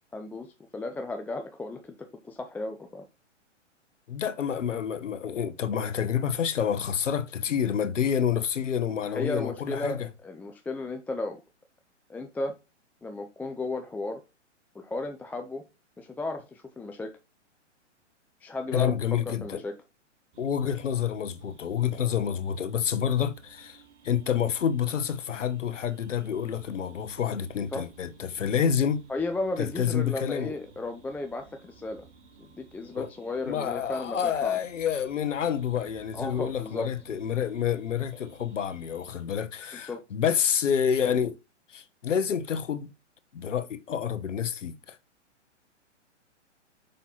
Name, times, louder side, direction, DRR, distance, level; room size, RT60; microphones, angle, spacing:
voice 1, 0.1-3.1 9.0-11.4 12.1-12.5 13.0-14.2 14.7-15.6 16.0-17.1 18.4-18.9 19.3-19.7 27.7-27.8 29.1-32.1 32.4-34.6 36.1-36.9 39.7-40.0, left 2 dB, 5° left, 0.5 m, -34 dB
voice 2, 4.1-10.1 18.7-19.6 20.4-29.0 29.6-30.6 32.9-33.1 33.5-41.4 41.7-42.9 43.3-45.0, left 8 dB, 80° left, 1.3 m, -28 dB
sound 1, 20.3-39.2, right 5 dB, 65° right, 4.1 m, -55 dB
7.0 x 5.8 x 4.4 m
hypercardioid pair, 130°, 37 cm